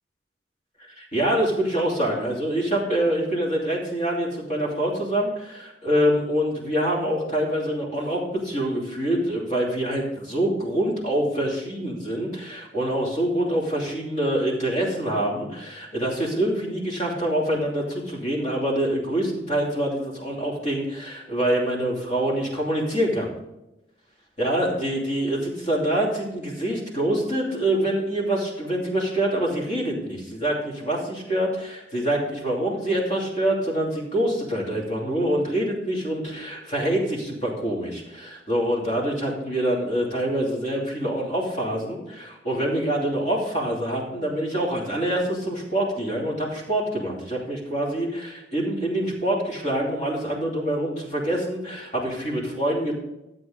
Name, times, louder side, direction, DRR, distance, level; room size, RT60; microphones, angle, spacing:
voice 1, 1.0-23.3 24.4-52.9, right 1 dB, 40° left, -2 dB, 2.9 m, -25 dB
13.0 x 7.9 x 3.9 m, 0.93 s
head